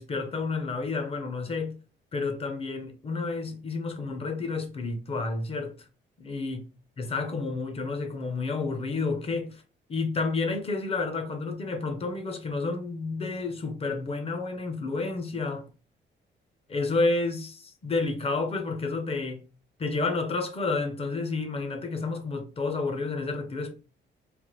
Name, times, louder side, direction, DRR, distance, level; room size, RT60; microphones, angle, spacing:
voice 1, 0.0-1.8 2.1-5.8 6.2-6.6 7.0-9.6 9.9-15.7 16.7-19.4 19.8-23.7, left 3 dB, 30° left, 0.5 m, -30 dB
3.2 x 2.1 x 3.0 m
cardioid pair, 150°, 20 cm